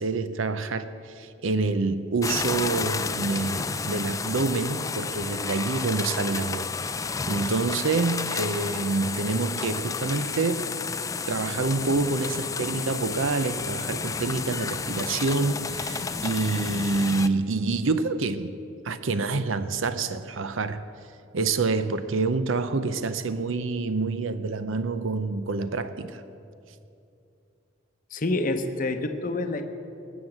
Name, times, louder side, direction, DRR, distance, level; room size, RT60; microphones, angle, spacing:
voice 1, 0.0-6.7 7.3-10.7 11.3-18.6 18.8-20.8 21.3-26.2, right 3 dB, 75° right, 12 dB, 0.6 m, -27 dB
sound 1, 2.2-17.3, left 5 dB, 15° left, 0.3 m, -31 dB
voice 2, 28.1-29.6, left 2 dB, 40° left, 7 dB, 0.8 m, -27 dB
19.0 x 7.3 x 7.9 m, 2.6 s
head